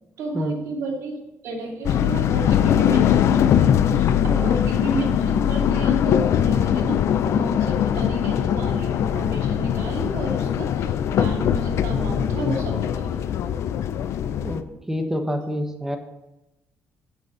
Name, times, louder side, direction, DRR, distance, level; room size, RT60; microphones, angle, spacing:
voice 1, 0.2-1.2 1.4-7.0 7.2-13.3, right 2 dB, 80° right, -1 dB, 2.7 m, -31 dB
sound 1, 1.8-14.6, left 9 dB, 70° left, 0.5 m, -21 dB
voice 2, 4.2-4.6 14.4-16.0, equal, 10° right, 6 dB, 1.3 m, -28 dB
8.3 x 6.9 x 5.5 m, 0.96 s
cardioid pair, 95°, 5 cm